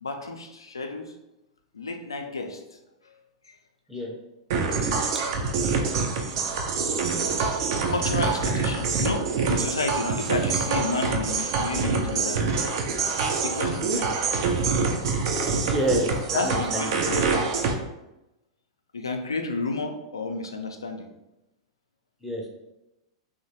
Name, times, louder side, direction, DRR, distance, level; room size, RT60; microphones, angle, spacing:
voice 1, 0.0-1.1 1.7-2.8 3.0-3.1 4.7-5.2 7.9-12.4 13.4-14.3 16.3-17.4 18.9-21.1, left 3 dB, 80° left, 5 dB, 0.4 m, -31 dB
sound 1, 4.5-17.7, right 4 dB, 55° right, 0.4 m, -26 dB
voice 2, 15.5-16.9 22.2-22.5, equal, 5° right, -1 dB, 0.5 m, -28 dB
3.0 x 2.1 x 2.7 m, 0.94 s
figure-of-eight pair, 95°, 2 cm